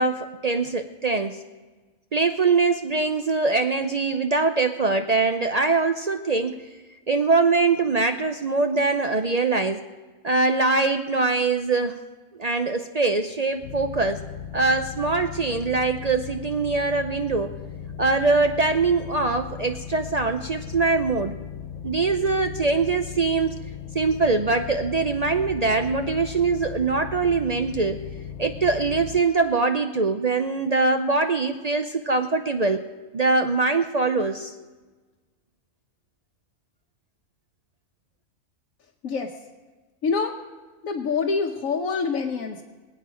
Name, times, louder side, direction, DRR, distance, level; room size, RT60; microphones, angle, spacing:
voice 1, 0.0-1.4 2.1-6.6 7.1-9.8 10.2-12.0 12.4-14.2 14.5-17.6 18.0-21.4 21.8-23.5 23.9-28.0 28.4-32.8 33.1-34.5, right 3 dB, 50° right, 7 dB, 0.5 m, -23 dB
sound 1, 13.6-29.2, left 7 dB, 65° left, 0.9 m, -37 dB
voice 2, 39.0-39.4 40.0-40.4 40.8-42.6, left 5 dB, 80° left, 0 dB, 1.3 m, -26 dB
24.0 x 8.7 x 5.0 m, 1.3 s
omnidirectional pair, 1.4 m